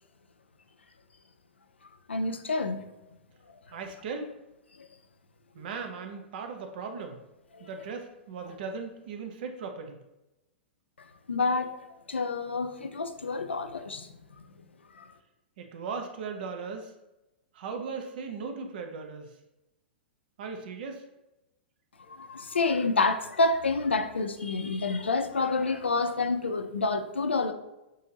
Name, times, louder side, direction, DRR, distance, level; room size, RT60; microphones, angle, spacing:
voice 1, 2.1-2.8 4.8-4.9 5.6-5.7 7.5-7.7 11.3-14.4 14.9-15.1 22.0-27.5, left 3 dB, 85° left, 8 dB, 0.4 m, -28 dB
voice 2, 3.7-4.4 5.5-7.2 7.6-10.0 15.6-16.9 17.5-19.4 20.4-21.0, right 5 dB, 55° right, 5 dB, 0.7 m, -38 dB
6.3 x 2.7 x 2.8 m, 0.96 s
figure-of-eight pair, 110°, 6 cm